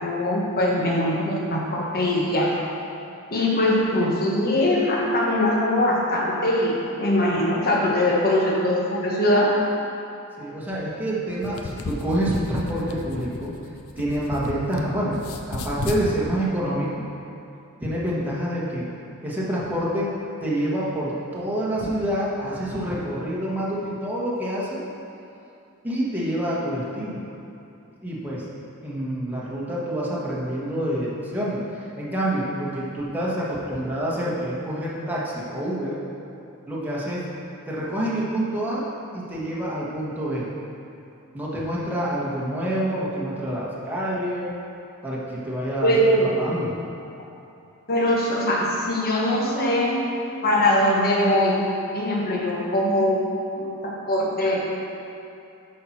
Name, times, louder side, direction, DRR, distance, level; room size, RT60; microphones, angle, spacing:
voice 1, 0.0-2.5 3.3-9.5 45.8-46.3 47.9-50.0 50.4-51.6 51.9-53.2 53.6-54.7, left 1 dB, 45° left, -3 dB, 1.4 m, -22 dB
voice 2, 10.4-13.5 14.0-15.2 15.5-17.0 17.8-18.9 19.2-20.1 20.4-24.8 25.8-27.2 28.0-28.4 28.8-36.0 36.7-37.2 37.7-38.8 39.1-40.5 41.3-44.5 45.0-46.7, right 1 dB, 10° right, -7 dB, 1.3 m, -27 dB
sound 1, 11.3-14.8 15.1-16.0, left 3 dB, 70° left, 0.6 m, -33 dB
8.4 x 4.4 x 5.9 m, 2.7 s
head